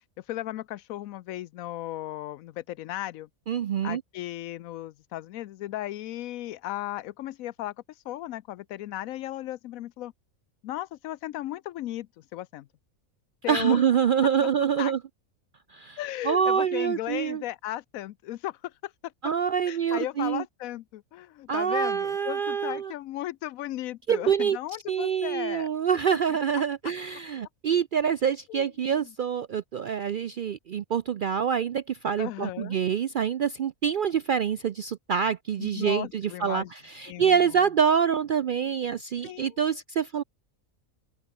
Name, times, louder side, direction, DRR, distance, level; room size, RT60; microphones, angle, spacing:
voice 1, 0.3-3.3 3.8-7.7 8.0-10.1 10.6-12.7 13.4-13.8 14.4-14.5 14.8-14.9 16.0-19.1 19.7-25.7 28.5-28.7 29.0-29.1 32.2-32.8 35.6-36.7 37.1-37.4 39.2-39.6, left 14 dB, 85° left, 1.0 m, -36 dB
voice 2, 3.5-4.0 13.5-15.0 15.7-16.0 16.2-17.4 19.2-20.4 21.5-22.9 24.1-24.6 24.9-40.2, right 7 dB, 65° right, 0.5 m, -26 dB
open air
omnidirectional pair, 1.4 m